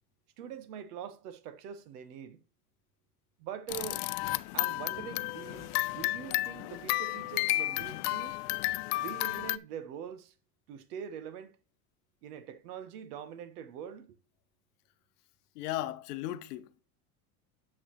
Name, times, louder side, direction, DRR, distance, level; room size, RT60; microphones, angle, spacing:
voice 1, 0.4-2.4 3.4-4.1 4.5-8.4 9.0-10.3 10.7-11.6 12.2-14.2, right 8 dB, 80° right, 1.1 m, -43 dB
sound 1, 3.7-9.6, left 20 dB, 60° left, 0.6 m, -32 dB
voice 2, 15.5-16.8, left 14 dB, 85° left, 1.0 m, -37 dB
8.9 x 6.4 x 3.1 m
supercardioid pair, 105°, 46 cm